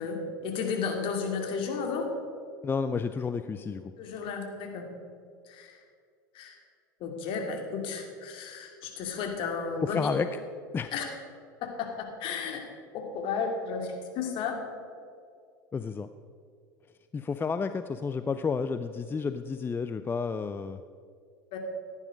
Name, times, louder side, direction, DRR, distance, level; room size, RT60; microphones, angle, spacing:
voice 1, 0.0-2.1 4.0-4.9 5.5-5.8 6.3-6.6 7.0-10.1 10.9-11.1 11.6-12.6 12.9-14.6 21.5-21.6, left 5 dB, 55° left, 3 dB, 2.5 m, -33 dB
voice 2, 2.6-3.9 9.8-10.4 10.7-10.9 15.7-16.1 17.1-20.8, left 5 dB, 20° left, 11 dB, 0.5 m, -31 dB
15.0 x 9.9 x 5.1 m, 2.2 s
hypercardioid pair, 85°, 11 cm